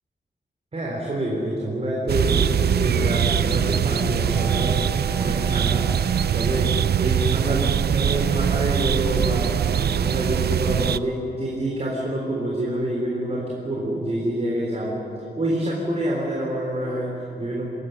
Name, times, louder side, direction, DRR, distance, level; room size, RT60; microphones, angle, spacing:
voice 1, 0.7-4.8 5.2-5.9 6.3-15.0 15.4-17.7, right 1 dB, 35° right, -3 dB, 3.9 m, -27 dB
sound 1, 2.1-11.0, right 9 dB, 65° right, 0.5 m, -22 dB
sound 2, 4.2-13.9 14.2-14.3, right 1 dB, 15° left, 3.9 m, -45 dB
26.0 x 14.0 x 9.7 m, 2.8 s
wide cardioid pair, 135°, 18 cm